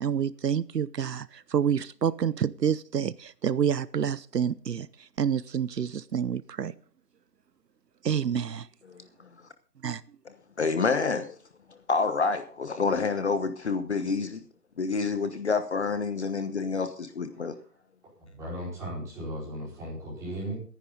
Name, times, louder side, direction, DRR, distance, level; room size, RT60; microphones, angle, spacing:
voice 1, 0.0-4.9 5.2-6.7 8.0-8.7 9.8-10.0, right 8 dB, 75° right, 18 dB, 0.8 m, -28 dB
voice 2, 10.6-11.4 11.9-14.4 14.8-17.5, left 4 dB, 45° left, 10 dB, 1.1 m, -28 dB
voice 3, 18.2-20.6, equal, 5° right, -6 dB, 4.8 m, -36 dB
19.0 x 10.5 x 3.9 m, 0.43 s
figure-of-eight pair, 165°, 49 cm